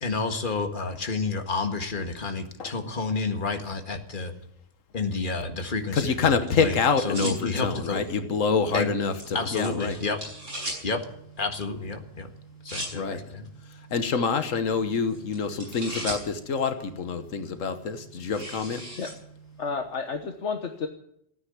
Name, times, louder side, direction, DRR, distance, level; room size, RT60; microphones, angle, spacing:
voice 1, 0.0-4.3 4.9-8.0 8.7-8.9 9.3-10.2 10.8-11.0 11.4-12.3 12.6-13.5, left 3 dB, 40° left, 5 dB, 1.9 m, -30 dB
sound 1, 5.7-19.7, right 1 dB, 70° right, 7.7 m, -41 dB
voice 2, 5.9-10.0 12.9-13.2 13.9-18.8, left 5 dB, 85° left, 9 dB, 1.5 m, -26 dB
voice 3, 19.6-20.9, left 5 dB, 65° left, 5 dB, 1.5 m, -31 dB
15.0 x 9.7 x 9.9 m, 0.73 s
omnidirectional pair, 1.3 m